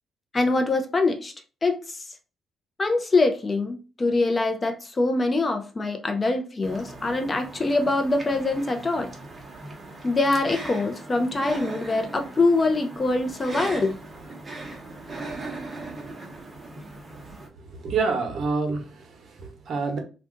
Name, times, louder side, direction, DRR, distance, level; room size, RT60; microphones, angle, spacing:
voice 1, 0.3-1.3 1.6-2.0 2.8-9.1 10.0-14.0, left 3 dB, 30° left, 0.6 m, -24 dB
sound 1, 6.6-17.5, right 2 dB, 30° right, 0.9 m, -39 dB
voice 2, 17.5-20.0, right 4 dB, 60° right, 0.9 m, -28 dB
2.6 x 2.3 x 3.7 m
cardioid pair, 90°, 0 cm